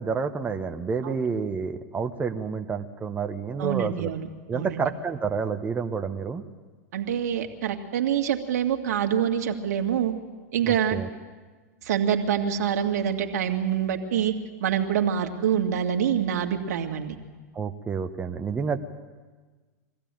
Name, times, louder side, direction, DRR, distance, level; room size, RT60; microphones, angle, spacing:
voice 1, 0.0-4.1 4.5-6.4 10.6-11.1 17.5-18.8, right 5 dB, 15° right, 5 dB, 1.1 m, -29 dB
voice 2, 3.6-4.3 4.5-4.8 6.9-10.1 10.5-11.0 11.8-14.3 14.6-17.2, right 9 dB, 70° right, 4 dB, 2.1 m, -25 dB
23.0 x 15.5 x 9.1 m, 1.4 s
hypercardioid pair, 115°, 9 cm